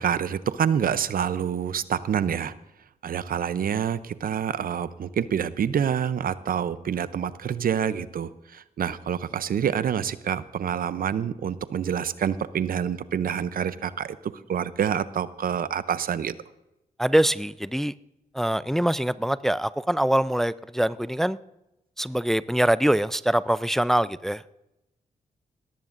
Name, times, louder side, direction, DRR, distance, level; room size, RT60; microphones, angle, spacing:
voice 1, 0.0-2.5 3.0-14.2 14.5-16.3, right 8 dB, 70° right, 15 dB, 0.6 m, -27 dB
voice 2, 17.0-17.9 18.3-21.4 22.0-24.4, right 1 dB, ahead, 16 dB, 0.4 m, -23 dB
18.5 x 14.5 x 2.6 m, 0.90 s
cardioid pair, 55°, 16 cm